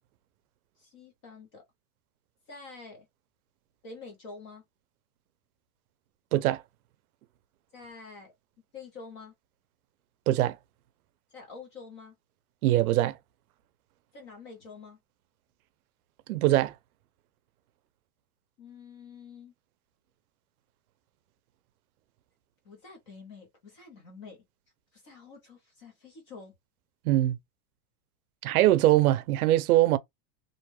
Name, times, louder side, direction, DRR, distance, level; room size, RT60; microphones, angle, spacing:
voice 1, 0.8-1.6 2.5-3.1 3.8-4.6 7.7-8.3 8.7-9.3 11.3-12.1 14.1-15.0 18.6-19.5 22.6-24.4 24.9-26.5, left 4 dB, 20° left, 0.5 m, -47 dB
voice 2, 6.3-6.6 10.3-10.6 12.6-13.2 16.3-16.7 27.1-27.4 28.4-30.0, right 15 dB, 80° right, 0.6 m, -22 dB
2.6 x 2.1 x 2.9 m
supercardioid pair, 180°, 43 cm